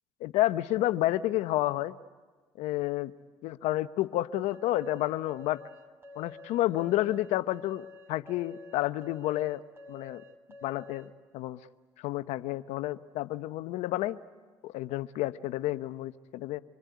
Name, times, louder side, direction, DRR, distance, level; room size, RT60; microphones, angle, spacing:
voice 1, 0.2-1.9 2.6-3.1 3.4-5.6 6.2-9.6 9.9-10.2 10.6-11.6 12.0-14.2 14.6-16.6, left 15 dB, 75° left, 13 dB, 0.8 m, -30 dB
sound 1, 4.5-11.1, left 3 dB, 20° right, 4.1 m, -49 dB
26.5 x 21.5 x 9.5 m, 1.4 s
supercardioid pair, 75°, 12 cm